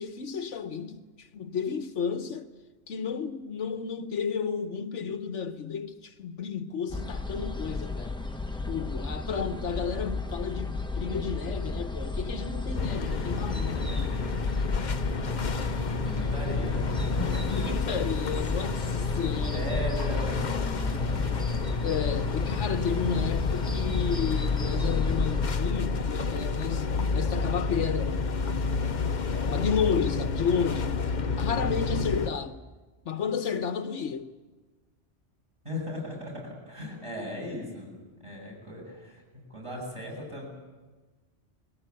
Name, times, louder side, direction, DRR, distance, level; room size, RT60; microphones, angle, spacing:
voice 1, 0.0-2.5 2.9-8.2 8.7-14.1 17.5-19.8 21.8-28.3 29.5-32.6 33.0-34.3, left 7 dB, 75° left, 1.3 m, -32 dB
sound 1, 6.9-25.5, left 3 dB, 5° left, 1.0 m, -33 dB
sound 2, 12.8-32.3, left 4 dB, 45° left, 0.9 m, -30 dB
voice 2, 15.6-17.5 19.5-20.5 21.0-21.3 35.6-37.9 38.2-40.5, equal, 25° right, 8.1 m, -37 dB
21.5 x 18.0 x 9.6 m
omnidirectional pair, 1.2 m